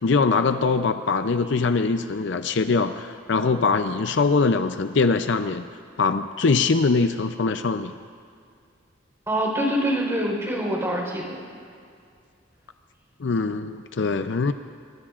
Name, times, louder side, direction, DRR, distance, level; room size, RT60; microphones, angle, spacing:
voice 1, 0.0-5.7 6.0-7.9 13.2-14.5, left 4 dB, 60° left, 9 dB, 0.5 m, -22 dB
voice 2, 9.3-11.4, right 1 dB, 15° right, -1 dB, 4.1 m, -25 dB
24.0 x 22.0 x 2.5 m, 2.3 s
head